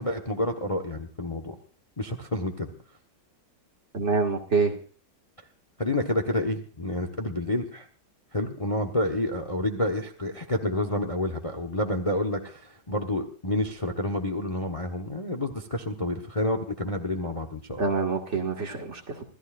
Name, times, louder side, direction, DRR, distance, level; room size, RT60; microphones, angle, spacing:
voice 1, 0.0-1.5 2.0-2.7 5.8-7.8 8.3-17.8, left 1 dB, 20° left, 6 dB, 1.1 m, -29 dB
voice 2, 3.9-4.7 17.8-19.2, right 4 dB, 40° right, 2 dB, 2.3 m, -26 dB
27.0 x 14.5 x 2.5 m, 0.40 s
omnidirectional pair, 2.0 m